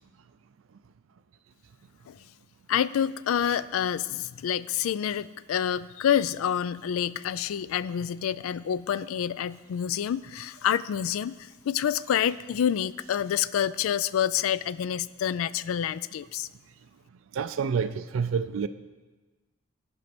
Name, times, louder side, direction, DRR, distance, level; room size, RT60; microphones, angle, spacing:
voice 1, 2.7-16.5, left 9 dB, 85° left, 18 dB, 0.3 m, -28 dB
voice 2, 17.3-18.7, right 6 dB, 70° right, 10 dB, 0.4 m, -28 dB
12.5 x 5.2 x 6.0 m, 1.3 s
head